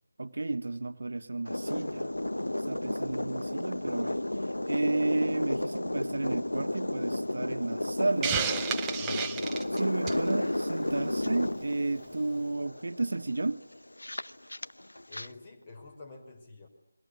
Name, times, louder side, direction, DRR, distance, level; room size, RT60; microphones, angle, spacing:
voice 1, 0.2-2.1 2.7-4.2 4.7-8.5 9.7-13.6, right 2 dB, 60° right, 10 dB, 1.5 m, -32 dB
sound 1, 1.5-15.3, left 1 dB, 85° left, 0.9 m, -33 dB
Hiss, 8.2-10.3, right 7 dB, 10° right, 1.0 m, -31 dB
voice 2, 9.0-9.5 15.1-16.7, left 3 dB, 25° left, 4 dB, 5.4 m, -48 dB
29.0 x 22.5 x 8.5 m, 0.85 s
figure-of-eight pair, 165°, 0 cm